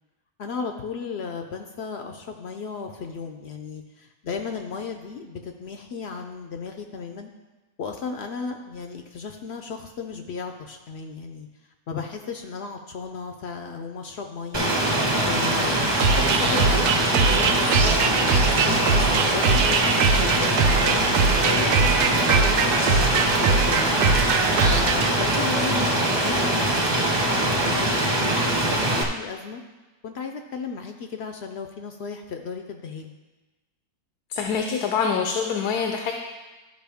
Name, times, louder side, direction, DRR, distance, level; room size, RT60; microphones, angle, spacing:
voice 1, 0.4-7.3 7.8-11.5 11.9-14.7 15.3-21.7 22.3-23.9 24.7-28.3 28.6-29.6 30.0-33.2, left 5 dB, 70° left, 5 dB, 0.6 m, -35 dB
Rain, 14.5-29.0, right 1 dB, 25° right, 0.6 m, -23 dB
sound 1, 16.0-25.1, right 5 dB, 90° right, 1.2 m, -22 dB
voice 2, 34.3-36.1, left 6 dB, 90° left, 3 dB, 1.2 m, -25 dB
12.5 x 5.2 x 3.5 m, 1.2 s
omnidirectional pair, 1.6 m